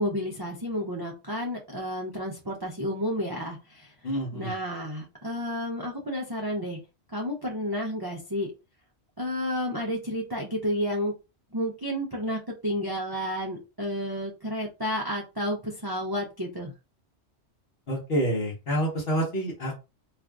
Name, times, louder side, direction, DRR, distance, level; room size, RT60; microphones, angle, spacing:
voice 1, 0.0-3.9 4.3-6.8 7.1-8.5 9.2-11.1 11.5-16.7, equal, 35° right, -1 dB, 0.4 m, -31 dB
voice 2, 4.0-4.5 17.9-19.7, equal, 55° left, -3 dB, 1.1 m, -28 dB
2.5 x 2.5 x 3.3 m, 0.28 s
omnidirectional pair, 1.3 m